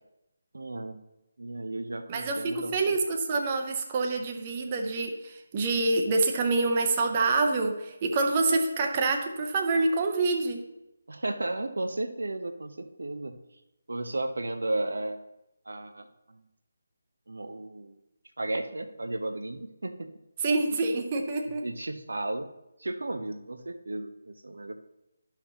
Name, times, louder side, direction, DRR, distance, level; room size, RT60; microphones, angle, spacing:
voice 1, 0.5-1.0 1.4-2.9 11.1-13.4 13.9-15.2 15.7-16.4 17.3-18.0 18.4-20.1 20.7-20.9 21.6-22.5 22.8-24.1 24.4-24.8, right 2 dB, 65° right, 7 dB, 0.6 m, -34 dB
voice 2, 2.1-10.6 20.4-21.6, right 3 dB, 25° right, 4 dB, 0.8 m, -26 dB
12.5 x 5.8 x 2.9 m, 0.91 s
figure-of-eight pair, 150°, 0 cm